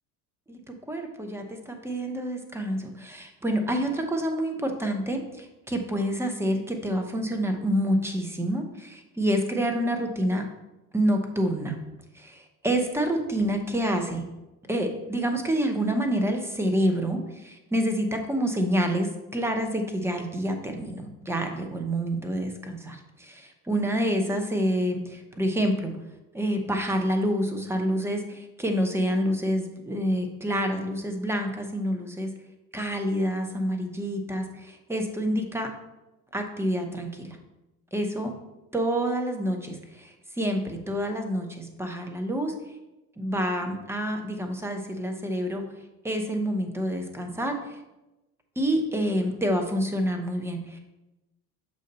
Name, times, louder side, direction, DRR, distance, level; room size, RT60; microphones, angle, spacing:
voice 1, 0.9-10.4 10.9-11.7 12.1-14.2 14.7-25.9 26.3-32.3 32.7-35.7 36.3-37.4 37.9-38.3 38.7-42.5 43.2-45.6 46.0-47.8 48.6-50.8, equal, 5° right, 4 dB, 0.8 m, -28 dB
6.5 x 2.7 x 5.3 m, 0.98 s
hypercardioid pair, 85°, 46 cm